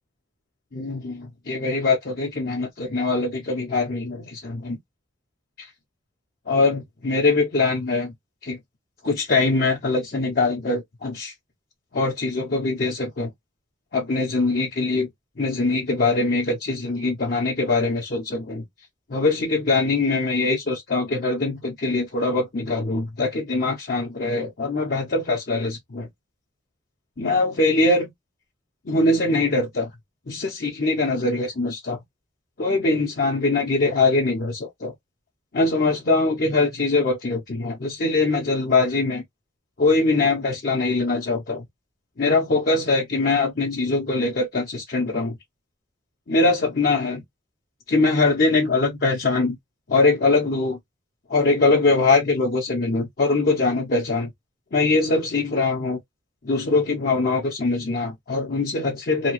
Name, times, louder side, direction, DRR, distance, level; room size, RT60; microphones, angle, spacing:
voice 1, 0.7-4.8 6.5-8.1 8.4-8.6 9.0-11.3 11.9-13.3 13.9-15.1 15.4-18.6 19.1-26.1 27.2-28.1 28.9-29.9 30.3-32.0 32.6-34.9 35.5-39.2 39.8-41.6 42.2-45.4 46.3-47.2 47.9-49.6 49.9-50.8 51.3-54.3 54.7-56.0 56.4-59.3, left 3 dB, 50° left, 0.7 m, -22 dB
2.9 x 2.4 x 2.9 m
head